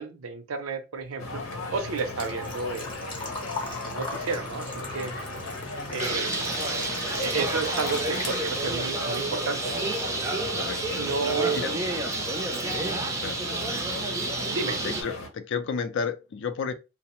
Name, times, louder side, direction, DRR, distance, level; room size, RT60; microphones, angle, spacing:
voice 1, 0.0-1.4 1.7-3.3 3.8-5.1 5.9-6.5 7.1-10.0 11.0-11.6 14.5-14.8, right 4 dB, 85° right, 0.6 m, -32 dB
Engine / Trickle dribble / Fill (with liquid), 1.0-9.0 9.3-10.3 10.6-10.7 12.6-12.7 12.8-13.2 13.6-13.7 13.9-14.0, left 3 dB, 25° left, 0.7 m, -39 dB
sound 1, 1.2-15.3, left 2 dB, 80° left, 0.8 m, -37 dB
Bird, 6.0-15.0, right 2 dB, 15° right, 0.4 m, -30 dB
voice 2, 10.5-11.0 11.5-11.7 13.2-13.4 14.8-16.7, left 6 dB, 60° left, 0.4 m, -31 dB
2.7 x 2.0 x 2.9 m
head